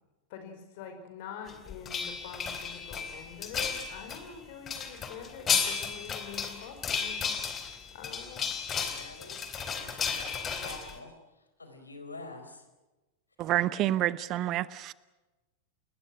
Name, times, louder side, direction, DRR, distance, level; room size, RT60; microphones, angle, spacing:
voice 1, 0.3-8.5, left 7 dB, 50° left, 7 dB, 5.4 m, -45 dB
sound 1, 1.5-4.2 4.7-10.9, left 6 dB, 25° left, 3.7 m, -33 dB
voice 2, 8.7-11.2 11.6-12.7 13.4-13.5, left 2 dB, 80° left, 7 dB, 4.3 m, -47 dB
voice 3, 13.4-14.9, right 14 dB, 35° right, 19 dB, 0.8 m, -28 dB
30.0 x 20.5 x 6.1 m, 1.1 s
figure-of-eight pair, 90°, 0 cm